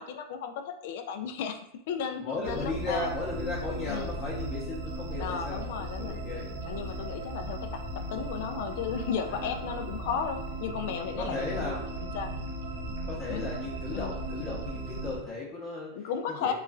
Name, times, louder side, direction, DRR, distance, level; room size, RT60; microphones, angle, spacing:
voice 1, 0.0-1.6 1.9-3.1 3.9-4.1 5.2-6.2 6.6-7.8 8.1-12.3 13.3-13.4 13.9-14.2 15.9-16.5, left 7 dB, 65° left, 7 dB, 0.3 m, -34 dB
voice 2, 2.2-5.7 6.0-6.5 9.3-9.6 11.2-11.8 13.1-15.9 16.4-16.5, left 2 dB, 25° left, -6 dB, 0.7 m, -35 dB
sound 1, 2.4-15.2, right 1 dB, 85° right, 0.7 m, -37 dB
2.9 x 2.4 x 2.3 m, 0.72 s
hypercardioid pair, 110°, 0 cm